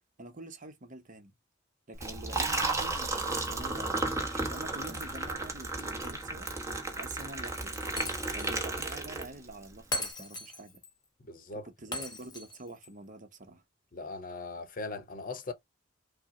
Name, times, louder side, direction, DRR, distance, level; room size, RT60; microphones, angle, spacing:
voice 1, 0.2-1.3 1.9-6.5 7.0-7.8 8.3-10.8 11.6-13.6, right 2 dB, 45° right, 0.9 m, -46 dB
Liquid, 2.0-9.6, right 2 dB, 15° right, 1.0 m, -33 dB
Shatter, 8.0-8.6 8.9-9.0 9.9-10.9 11.9-12.9, left 2 dB, 20° left, 1.1 m, -38 dB
voice 2, 11.2-11.6 13.9-15.5, left 3 dB, 45° left, 0.8 m, -39 dB
5.8 x 2.1 x 3.7 m
head